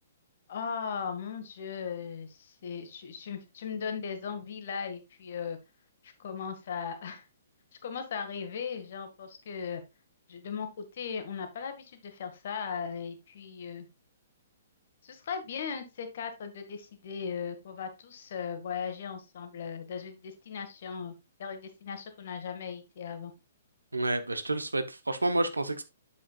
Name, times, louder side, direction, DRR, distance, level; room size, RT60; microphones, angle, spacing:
voice 1, 0.5-5.6 6.0-7.2 7.8-9.8 10.3-13.8 15.0-21.1 21.4-23.3, left 6 dB, 50° left, 1.6 m, -38 dB
voice 2, 23.9-25.8, right 2 dB, 80° right, 1.0 m, -29 dB
8.7 x 7.2 x 2.4 m
figure-of-eight pair, 120°, 0 cm